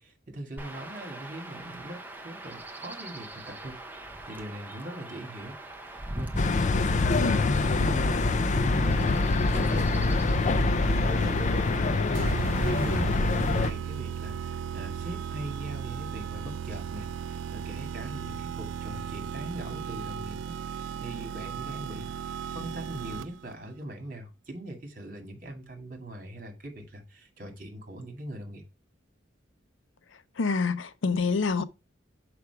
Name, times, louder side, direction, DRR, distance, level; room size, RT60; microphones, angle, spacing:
voice 1, 0.0-2.0 2.2-3.8 4.2-5.5 5.8-6.3 6.8-8.4 8.7-28.6, right 1 dB, 45° right, 1.9 m, -41 dB
Chirp tweet / Wind / Stream, 0.6-13.0, right 1 dB, 10° right, 0.7 m, -42 dB
sound 1, 6.4-13.7, left 3 dB, 40° left, 0.4 m, -25 dB
voice 2, 7.1-7.5 30.1-31.6, left 4 dB, 80° left, 0.6 m, -28 dB
sound 2, 12.2-23.5, right 8 dB, 80° right, 0.3 m, -36 dB
6.0 x 5.1 x 4.5 m
head